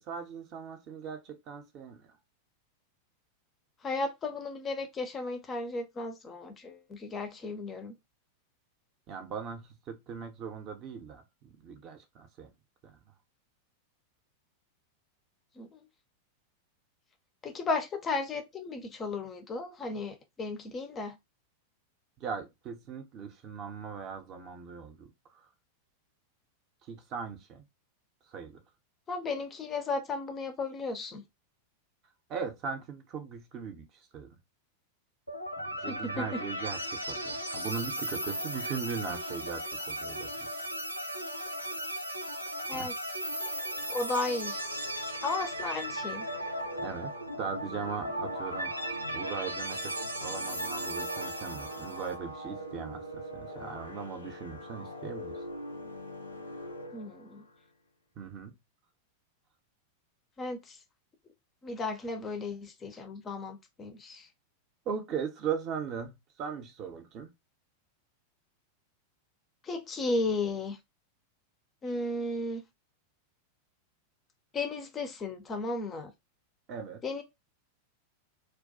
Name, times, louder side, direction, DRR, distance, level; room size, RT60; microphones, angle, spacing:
voice 1, 0.0-2.1 9.1-12.5 12.8-12.9 22.2-25.1 26.9-27.6 28.3-28.6 32.3-33.8 34.1-34.4 35.6-40.5 41.7-41.8 42.7-42.9 46.8-47.1 47.4-55.4 58.2-58.6 64.9-67.3 76.7-77.0, right 6 dB, 35° right, 0.5 m, -39 dB
voice 2, 3.8-7.9 15.6-15.7 17.4-21.2 29.1-31.2 35.9-36.2 42.7-42.9 43.9-44.6 45.2-46.3 56.9-57.4 60.4-60.8 61.6-64.3 69.6-70.8 71.8-72.6 74.5-76.1 77.0-77.2, left 3 dB, 25° left, 0.4 m, -34 dB
sound 1, 35.3-52.1, equal, 90° right, 0.4 m, -36 dB
sound 2, 43.5-57.6, equal, 80° left, 0.4 m, -44 dB
2.2 x 2.2 x 2.5 m
figure-of-eight pair, 90°, 0 cm